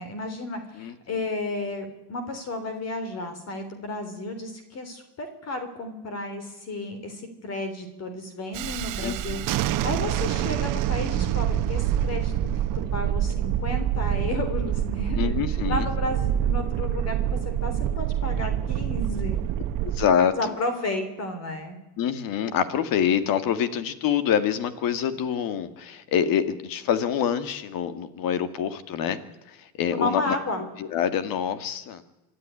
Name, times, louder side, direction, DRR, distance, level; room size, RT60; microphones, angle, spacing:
voice 1, 0.0-9.4 9.8-12.3 12.7-19.4 20.4-21.8 29.9-30.7, left 2 dB, 35° left, 9 dB, 3.4 m, -32 dB
Thunderstorm, 8.5-20.1, right 10 dB, 50° right, 1.2 m, -26 dB
voice 2, 9.0-9.5 15.2-15.9 19.8-20.3 22.0-29.2 29.8-30.4 30.8-32.0, left 8 dB, 50° left, 11 dB, 2.2 m, -26 dB
26.0 x 12.5 x 9.9 m, 1.0 s
cardioid pair, 140°, 42 cm